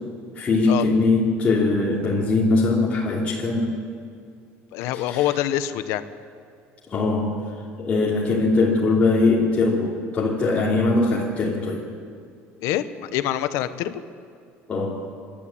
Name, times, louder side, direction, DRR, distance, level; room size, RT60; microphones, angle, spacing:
voice 1, 0.4-3.7 4.9-5.2 6.9-7.4 7.8-11.8 14.7-14.9, left 3 dB, 25° left, -6 dB, 3.0 m, -21 dB
voice 2, 4.7-6.0 12.6-14.0, left 12 dB, 70° left, 11 dB, 1.1 m, -25 dB
28.0 x 12.0 x 8.7 m, 2.3 s
cardioid pair, 160°, 5 cm